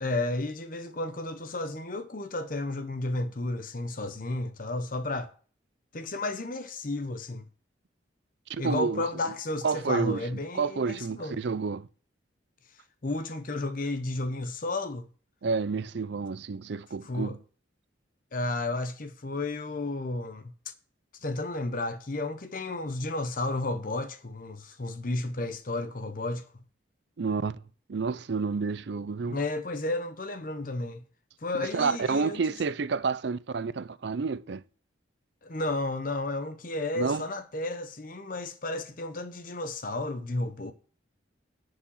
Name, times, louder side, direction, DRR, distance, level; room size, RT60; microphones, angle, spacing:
voice 1, 0.0-5.3 5.9-7.5 8.6-11.4 13.0-15.1 17.0-17.3 18.3-20.5 21.2-26.5 29.3-31.0 31.4-32.4 35.4-40.7, left 2 dB, 45° left, 0.8 m, -32 dB
voice 2, 8.5-9.0 9.6-10.2 10.5-11.9 15.4-17.4 27.2-27.6 27.9-29.4 31.5-34.6 37.0-37.2, right 5 dB, 60° right, 0.5 m, -29 dB
10.5 x 5.0 x 7.2 m
head